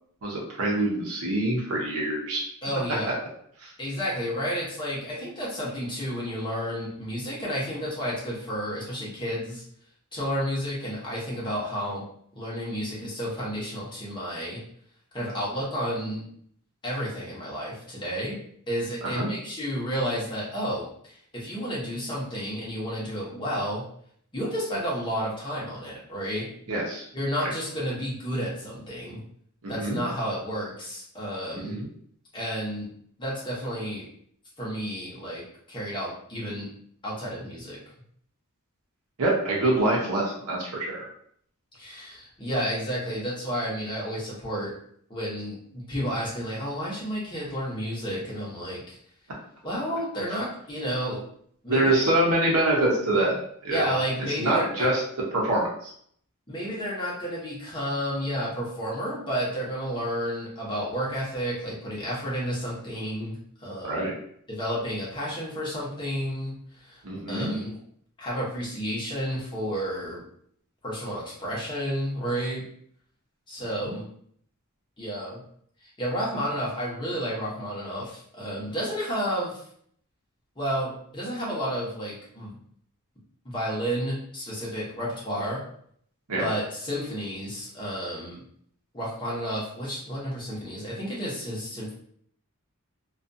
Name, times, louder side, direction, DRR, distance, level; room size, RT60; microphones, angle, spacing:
voice 1, 0.2-2.4 3.6-3.7 19.0-19.3 26.7-27.0 27.4-27.5 29.6-30.0 31.5-31.9 39.2-41.1 51.7-53.4 53.6-53.8 54.4-55.0 55.3-55.9 63.8-64.1 67.0-67.5 73.9-74.0 86.3-86.5, right 1 dB, 80° right, -3 dB, 0.7 m, -25 dB
voice 2, 2.6-3.1 3.8-9.6 10.1-12.0 12.3-14.6 15.1-16.2 16.8-18.4 18.7-23.8 24.3-26.5 27.1-29.2 29.7-31.8 32.3-32.9 33.2-34.1 34.6-36.7 37.0-37.8 41.8-44.7 45.1-49.0 49.6-51.2 51.6-51.9 53.1-53.2 53.7-54.9 56.5-64.1 64.5-66.5 66.9-67.0 67.3-67.7 68.2-70.2 70.8-72.6 73.5-74.0 75.0-75.4 75.8-79.6 80.6-82.5 83.4-85.6 86.4-88.4 88.9-91.9, equal, 20° left, -6 dB, 0.9 m, -31 dB
2.4 x 2.3 x 2.6 m, 0.64 s
head